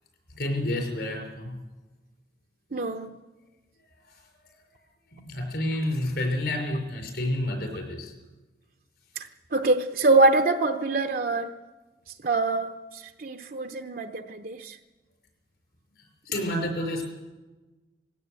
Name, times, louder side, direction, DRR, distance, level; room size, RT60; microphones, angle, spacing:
voice 1, 0.3-1.6 4.0-4.2 5.1-8.1 16.3-17.0, left 1 dB, 60° left, 2 dB, 5.8 m, -29 dB
voice 2, 2.7-3.1 9.2-11.5 12.2-14.8, right 2 dB, 50° right, 5 dB, 0.8 m, -24 dB
20.0 x 16.5 x 8.3 m, 1.2 s
head